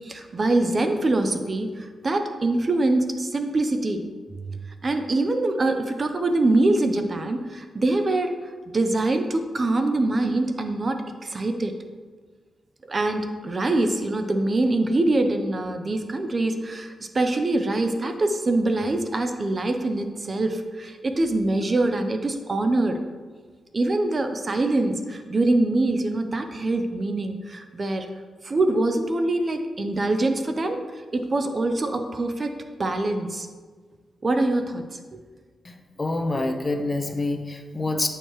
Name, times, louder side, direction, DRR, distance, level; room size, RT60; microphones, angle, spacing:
voice 1, 0.0-4.0 4.4-8.3 8.7-11.7 12.9-23.0 23.7-28.1 28.4-30.8 31.1-33.5 34.2-35.0, right 2 dB, 35° right, 7 dB, 0.5 m, -24 dB
voice 2, 35.6-38.1, left 2 dB, 25° left, 5 dB, 0.6 m, -27 dB
8.0 x 4.5 x 3.0 m, 1.5 s
cardioid pair, 100°, 0 cm